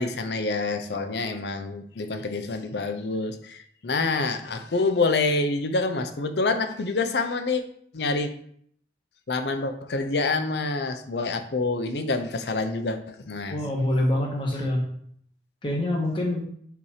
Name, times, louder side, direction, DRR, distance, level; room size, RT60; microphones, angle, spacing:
voice 1, 0.0-7.6 7.9-8.3 9.3-13.6, left 3 dB, 70° left, 7 dB, 0.6 m, -27 dB
voice 2, 0.9-1.3 13.5-14.9 15.6-16.4, left 1 dB, 25° left, -1 dB, 1.4 m, -26 dB
6.8 x 2.9 x 4.8 m, 0.64 s
head